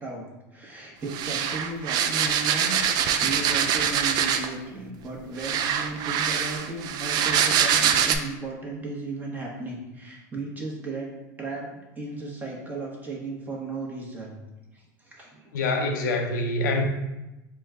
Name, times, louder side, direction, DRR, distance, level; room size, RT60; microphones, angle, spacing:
voice 1, 0.0-14.4 14.7-15.5, right 3 dB, 20° right, -2 dB, 1.0 m, -35 dB
sound 1, 1.1-4.6 5.4-8.2, right 8 dB, 45° right, 0.3 m, -24 dB
voice 2, 15.5-16.8, left 2 dB, 85° left, 3 dB, 0.6 m, -25 dB
4.4 x 2.2 x 3.5 m, 0.99 s
supercardioid pair, 115°, 10 cm